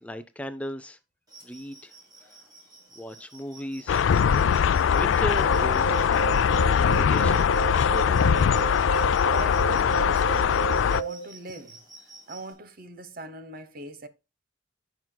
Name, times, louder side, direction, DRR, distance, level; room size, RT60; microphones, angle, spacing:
voice 1, 0.0-1.0 1.4-2.4 3.0-4.0 4.6-8.3, equal, 5° left, 0.4 m, -37 dB
sound 1, 1.3-12.5, right 3 dB, 20° right, 4.1 m, -50 dB
sound 2, 3.9-11.0, left 7 dB, 85° left, 0.3 m, -22 dB
sound 3, 5.3-11.3, right 6 dB, 55° left, 1.6 m, -33 dB
voice 2, 9.3-11.8 12.3-14.1, right 2 dB, 50° right, 1.0 m, -41 dB
14.0 x 6.0 x 2.2 m
head